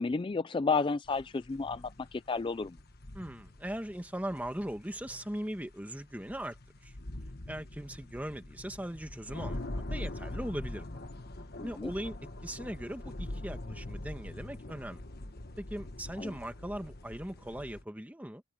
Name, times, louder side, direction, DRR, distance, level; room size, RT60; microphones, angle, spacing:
voice 1, 0.0-2.8 11.6-11.9 16.2-16.3, left 4 dB, 25° left, 0.3 m, -32 dB
sound 1, 1.0-17.8, left 1 dB, 50° left, 1.4 m, -43 dB
voice 2, 3.1-6.6 6.8-6.9 7.5-10.9 11.6-15.0 15.6-18.4, right 1 dB, 5° right, 1.3 m, -39 dB
head